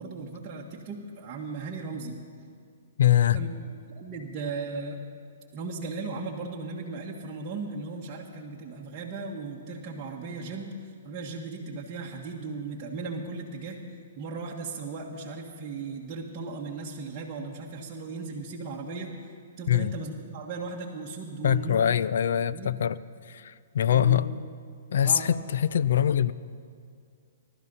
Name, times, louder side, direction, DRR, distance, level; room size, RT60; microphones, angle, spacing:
voice 1, 0.0-2.2 3.3-3.5 4.0-5.0 5.5-10.7 11.0-13.8 14.2-19.1 19.6-21.9 22.5-22.7 23.9-24.4 25.0-25.3, right 4 dB, 25° right, -4 dB, 1.5 m, -37 dB
voice 2, 3.0-3.4 19.7-19.9 21.4-23.0 23.3-24.3 24.9-26.3, left 10 dB, 70° left, 16 dB, 0.5 m, -23 dB
18.5 x 12.5 x 5.5 m, 2.3 s
hypercardioid pair, 145°, 0 cm